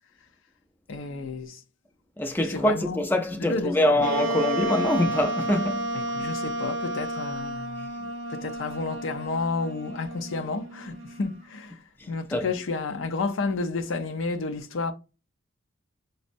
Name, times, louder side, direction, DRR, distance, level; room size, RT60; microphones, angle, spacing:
voice 1, 0.9-1.6 2.4-3.0 3.4-4.1 5.9-7.9 8.3-11.8 12.1-14.9, left 3 dB, 75° left, 0.5 m, -31 dB
voice 2, 2.2-6.0 12.3-12.5, left 1 dB, 10° left, 0.4 m, -24 dB
Wind instrument woodwind instrument, 4.0-11.4, right 1 dB, 75° right, 0.5 m, -32 dB
5.2 x 2.1 x 2.5 m
head